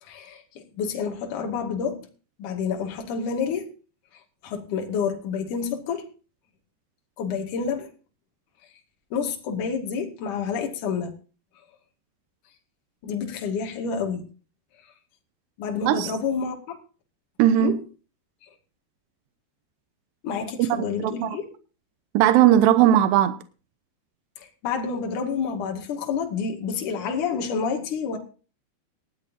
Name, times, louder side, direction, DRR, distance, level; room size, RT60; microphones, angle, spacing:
voice 1, 0.0-2.1 2.4-3.7 4.4-6.1 7.2-7.9 9.1-11.1 13.0-14.2 15.6-16.8 17.6-17.8 20.2-21.5 24.4-28.2, left 6 dB, 55° left, 3.4 m, -29 dB
voice 2, 17.4-17.7 21.0-21.3 22.1-23.4, right 11 dB, 85° right, 3.0 m, -18 dB
18.5 x 13.5 x 2.7 m
omnidirectional pair, 4.8 m